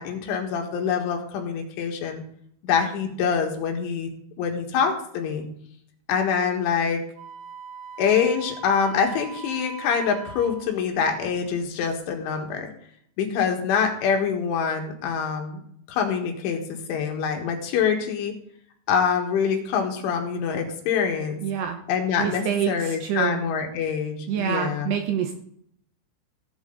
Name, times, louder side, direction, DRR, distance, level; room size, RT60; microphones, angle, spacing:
voice 1, 0.0-2.2 2.6-4.1 4.4-5.5 6.1-7.0 8.0-12.7 13.2-15.6 15.9-18.3 18.9-21.4 21.9-25.0, left 6 dB, 75° left, 3 dB, 4.0 m, -25 dB
Wind instrument woodwind instrument, 7.2-10.7, right 6 dB, 60° right, 2.7 m, -40 dB
voice 2, 21.4-21.8 22.2-23.4 24.3-25.4, right 9 dB, 75° right, 4 dB, 2.6 m, -26 dB
17.0 x 8.7 x 4.0 m, 0.67 s
omnidirectional pair, 5.7 m